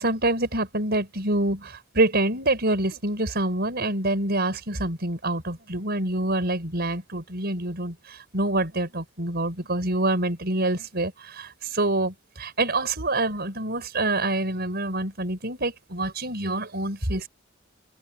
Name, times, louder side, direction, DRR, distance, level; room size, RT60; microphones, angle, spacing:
voice 1, 0.0-17.3, right 2 dB, 55° right, 5.6 m, -26 dB
head